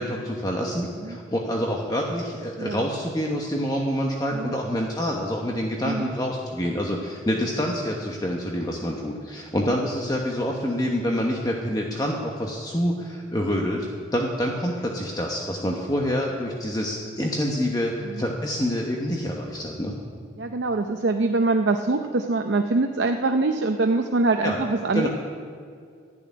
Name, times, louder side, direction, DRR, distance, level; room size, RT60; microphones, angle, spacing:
voice 1, 0.0-13.9 14.1-19.9 24.4-24.6 24.9-25.1, equal, 20° left, 0 dB, 1.0 m, -27 dB
voice 2, 20.4-25.1, right 3 dB, 75° right, 5 dB, 0.6 m, -24 dB
13.5 x 7.1 x 9.6 m, 2.2 s
head